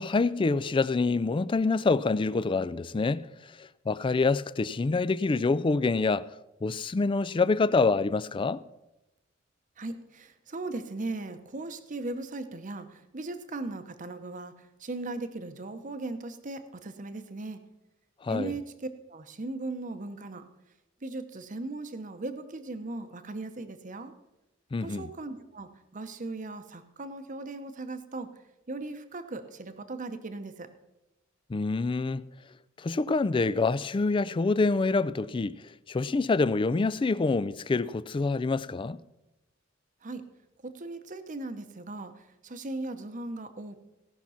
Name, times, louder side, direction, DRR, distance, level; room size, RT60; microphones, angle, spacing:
voice 1, 0.0-3.3 3.6-6.2 6.6-8.6 18.2-18.5 24.7-25.1 31.5-32.2 32.8-35.5 35.9-39.0, left 3 dB, 25° left, 0.3 m, -26 dB
voice 2, 9.8-14.5 14.8-17.6 18.3-18.6 19.1-20.4 21.0-24.1 24.8-28.3 28.7-30.7 40.0-40.2 40.6-43.8, right 2 dB, 40° right, 0.9 m, -38 dB
17.0 x 6.0 x 5.6 m
head